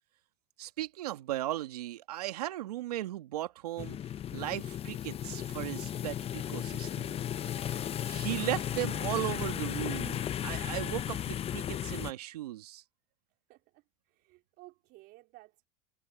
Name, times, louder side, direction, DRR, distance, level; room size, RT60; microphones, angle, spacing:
voice 1, 0.6-4.0 4.3-7.2 7.5-7.7 8.0-12.8, right 14 dB, 85° right, 1.8 m, -37 dB
sound 1, 3.8-12.1, left 10 dB, 30° left, 0.7 m, -35 dB
voice 2, 7.6-8.0 13.5-15.7, right 20 dB, 60° right, 4.1 m, -57 dB
hypercardioid pair, 95°, 19 cm